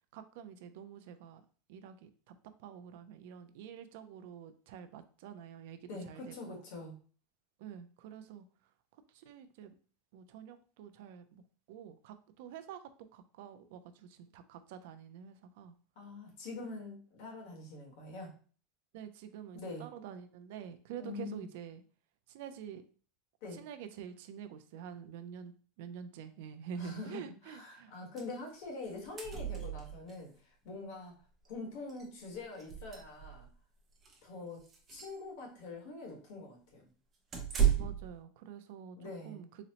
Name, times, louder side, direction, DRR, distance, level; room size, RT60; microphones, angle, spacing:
voice 1, 0.1-1.4 1.7-6.6 7.6-8.4 9.1-9.8 10.1-11.4 11.7-15.7 18.9-21.8 22.3-22.8 23.5-27.9 37.8-39.6, right 8 dB, 60° right, 10 dB, 0.3 m, -47 dB
voice 2, 5.9-7.0 16.0-18.3 19.5-19.9 21.0-21.5 23.4-23.6 26.8-30.3 30.6-31.1 31.5-33.5 34.2-34.6 34.9-36.9 39.0-39.4, left 3 dB, 55° left, 0 dB, 1.2 m, -44 dB
sound 1, 28.2-28.3 28.6-28.7 28.9-30.2 31.4-31.5 31.9-32.0 32.5-33.5 34.0-34.2 34.6-35.2 37.3-38.1, right 9 dB, 20° right, 0.6 m, -33 dB
3.9 x 2.0 x 2.8 m, 0.40 s
supercardioid pair, 170°, 0 cm